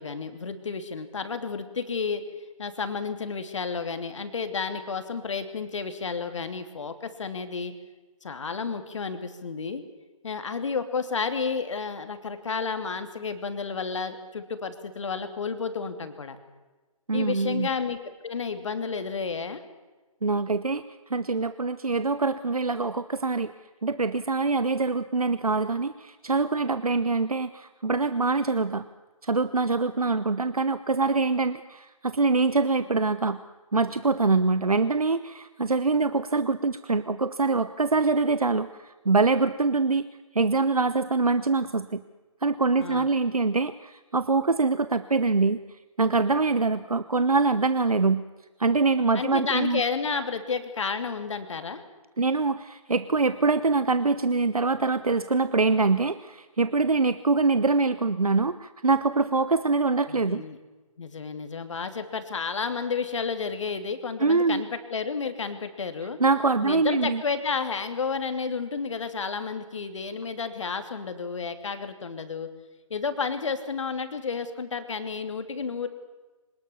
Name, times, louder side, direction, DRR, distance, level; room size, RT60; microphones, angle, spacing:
voice 1, 0.0-2.2 2.6-7.7 8.2-9.8 10.2-16.4 17.1-18.0 18.2-19.6 42.8-43.1 49.1-51.8 60.1-60.6 61.0-66.2 66.6-72.5 72.9-75.9, left 5 dB, 55° left, 9 dB, 2.8 m, -31 dB
voice 2, 17.1-17.7 20.2-20.8 21.1-23.5 23.8-28.9 29.2-33.4 33.7-40.1 40.3-42.0 42.4-45.6 46.0-48.2 48.6-49.8 52.2-60.4 64.2-64.6 66.2-67.2, right 3 dB, 85° right, 13 dB, 1.0 m, -24 dB
25.5 x 19.5 x 7.1 m, 1.2 s
figure-of-eight pair, 145°, 18 cm